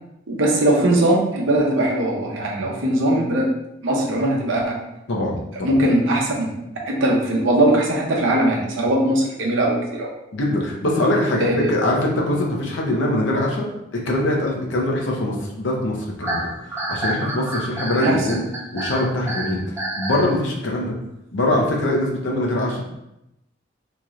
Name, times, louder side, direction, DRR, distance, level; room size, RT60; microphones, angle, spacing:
voice 1, 0.3-3.5 3.8-4.8 5.6-6.6 6.9-10.1 11.4-11.7 18.0-18.3, right 1 dB, 80° right, -2 dB, 0.7 m, -20 dB
voice 2, 5.1-5.8 10.3-16.5 16.9-18.4 18.7-20.9 21.3-22.8, left 1 dB, 70° left, -1 dB, 0.7 m, -23 dB
sound 1, 16.2-20.3, right 1 dB, 15° right, 0.5 m, -28 dB
3.0 x 2.5 x 3.0 m, 0.87 s
head